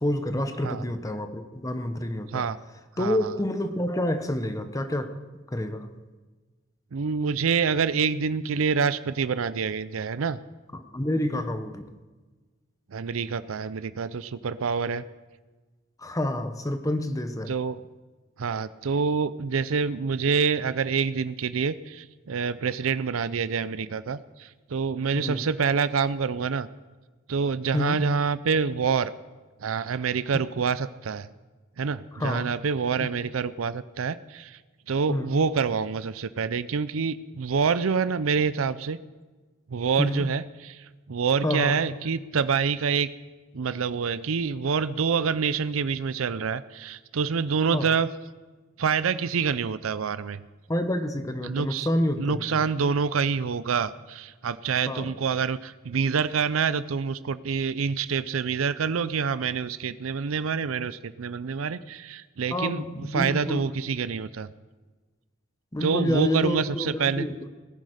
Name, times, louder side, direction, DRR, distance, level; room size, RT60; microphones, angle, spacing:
voice 1, 0.0-2.5 3.0-5.1 5.5-6.0 10.7-11.9 16.0-17.5 25.1-25.4 27.7-28.0 30.3-30.4 32.1-32.5 33.0-33.1 35.1-35.3 40.0-40.3 41.4-41.8 47.7-47.9 50.7-52.6 54.9-55.1 62.5-63.8 65.7-67.5, left 1 dB, 15° left, 8 dB, 0.9 m, -28 dB
voice 2, 3.0-3.3 6.9-10.4 12.9-15.0 17.5-17.8 18.4-26.7 27.3-29.1 29.6-31.3 31.8-34.6 34.9-39.0 39.7-43.1 43.5-48.1 48.8-50.4 51.4-51.9 52.2-64.5 65.8-67.3, right 5 dB, 85° right, 15 dB, 0.5 m, -27 dB
18.5 x 10.5 x 5.0 m, 1.3 s
head